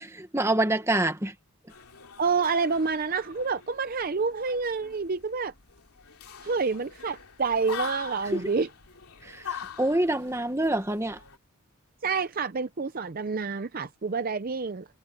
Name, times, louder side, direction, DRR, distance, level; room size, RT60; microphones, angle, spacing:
voice 1, 0.3-1.3 8.2-8.5 9.2-11.2, right 1 dB, 10° right, 1.5 m, -26 dB
sound 1, 1.7-11.4, left 7 dB, 90° left, 2.7 m, -44 dB
voice 2, 2.2-5.5 6.4-8.7 12.0-14.8, right 4 dB, 40° right, 0.5 m, -28 dB
head